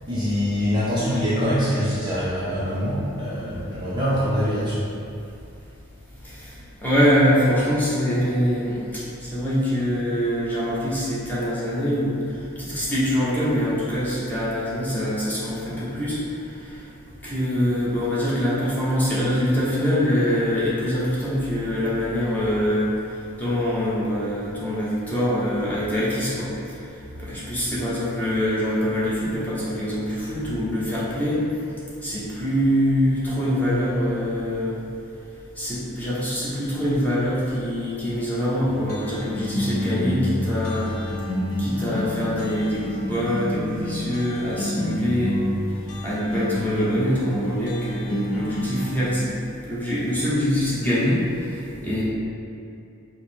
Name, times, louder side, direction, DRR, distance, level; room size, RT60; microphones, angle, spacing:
voice 1, 0.0-4.8 6.1-6.2 6.5-6.6, equal, 20° right, -9 dB, 0.5 m, -24 dB
voice 2, 6.8-12.1 12.6-16.2 16.6-16.7 17.2-22.9 23.4-26.5 27.2-31.4 32.0-34.8 35.6-40.9 41.6-45.4 46.0-49.3 49.7-51.6 51.8-52.0, equal, 10° left, -9 dB, 0.9 m, -24 dB
sound 1, 38.7-48.9, left 1 dB, 65° left, 0.6 m, -29 dB
4.9 x 2.1 x 4.3 m, 2.6 s
head